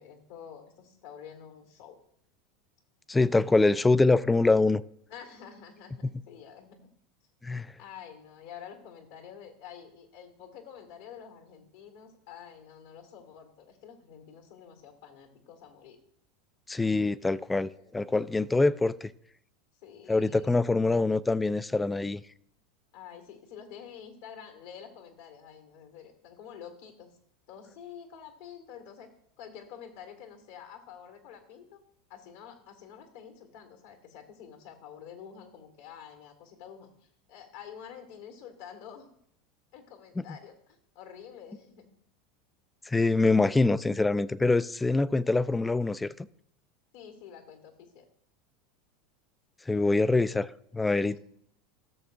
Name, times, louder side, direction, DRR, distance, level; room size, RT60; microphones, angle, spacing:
voice 1, 0.0-2.0 5.1-6.9 7.8-16.0 17.7-17.9 19.8-20.6 22.9-27.2 27.5-31.8 32.1-39.1 39.7-41.9 46.9-48.1 51.1-51.2, left 8 dB, 65° left, 1.6 m, -48 dB
voice 2, 3.1-4.8 7.4-7.7 16.7-19.1 20.1-22.2 40.2-40.3 42.9-46.3 49.7-50.5 50.7-51.2, left 3 dB, 10° left, 0.3 m, -24 dB
16.0 x 6.8 x 2.5 m
hypercardioid pair, 85°, 0 cm